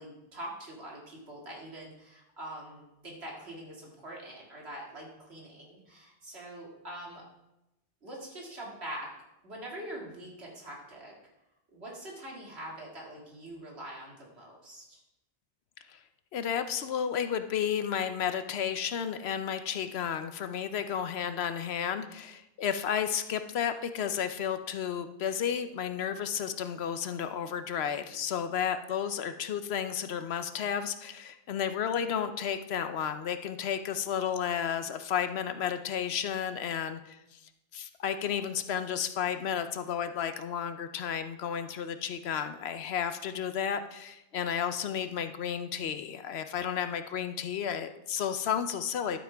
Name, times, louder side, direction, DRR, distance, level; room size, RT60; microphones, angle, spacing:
voice 1, 0.0-7.2 8.0-9.1 9.4-11.1 11.7-15.0, right 1 dB, 80° right, -3 dB, 2.6 m, -44 dB
voice 2, 16.3-37.4 37.7-49.2, left 8 dB, 80° left, 10 dB, 0.9 m, -32 dB
11.5 x 8.6 x 3.5 m, 0.91 s
omnidirectional pair, 1.1 m